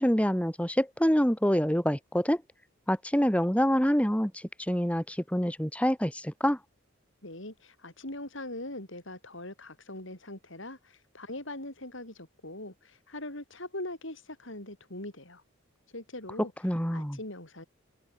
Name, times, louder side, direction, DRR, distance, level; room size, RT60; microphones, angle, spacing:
voice 1, 0.0-2.4 2.9-6.6 16.6-17.2, equal, 5° left, 2.2 m, -26 dB
voice 2, 7.2-15.4 15.9-16.5 16.9-17.6, left 1 dB, 60° left, 6.1 m, -41 dB
head